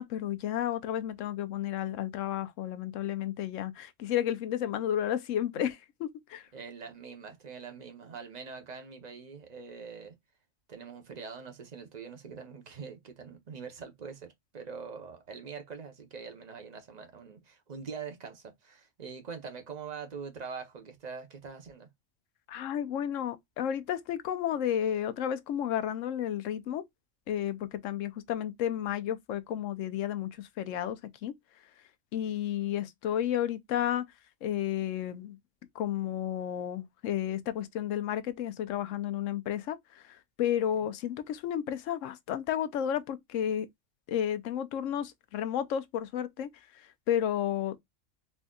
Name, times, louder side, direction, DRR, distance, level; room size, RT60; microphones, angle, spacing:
voice 1, 0.0-6.5 22.5-26.8 27.3-31.3 32.1-34.0 34.4-35.4 35.7-43.7 44.1-47.8, left 10 dB, 90° left, 1.0 m, -32 dB
voice 2, 6.5-10.1 10.7-21.9 40.7-40.9, right 5 dB, 40° right, 0.9 m, -43 dB
4.2 x 2.6 x 2.2 m
omnidirectional pair, 1.3 m